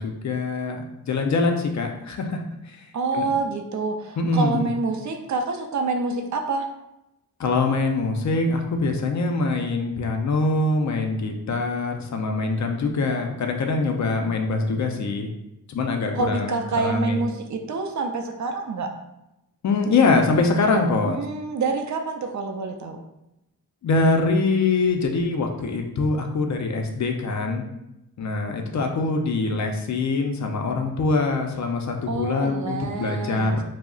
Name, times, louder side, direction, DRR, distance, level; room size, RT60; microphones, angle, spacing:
voice 1, 0.0-2.4 3.1-3.2 4.2-4.7 7.4-15.3 15.7-17.2 19.6-21.2 23.8-27.6 28.2-33.6, left 3 dB, 50° left, 3 dB, 0.4 m, -23 dB
voice 2, 2.9-6.7 16.1-18.9 21.0-23.0 32.1-33.6, right 3 dB, 55° right, 3 dB, 0.4 m, -27 dB
2.3 x 2.0 x 3.6 m, 0.91 s
wide cardioid pair, 85°, 36 cm